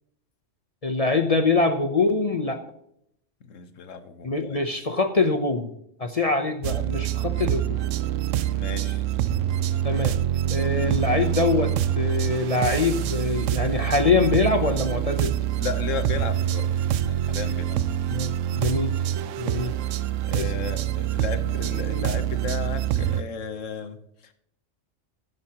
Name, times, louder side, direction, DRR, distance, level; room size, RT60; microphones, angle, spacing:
voice 1, 0.8-2.6 4.2-5.7 6.0-7.8 9.8-10.2 10.5-15.3 18.1-18.9 19.4-19.7 20.3-20.5, left 3 dB, 35° left, 7 dB, 0.7 m, -24 dB
voice 2, 3.5-4.6 8.5-9.0 15.6-16.7 17.0-17.8 20.2-24.0, left 6 dB, 90° left, 9 dB, 1.4 m, -34 dB
sound 1, 6.6-23.2, right 11 dB, 90° right, 1.0 m, -26 dB
11.5 x 11.5 x 2.9 m, 0.72 s
omnidirectional pair, 1.3 m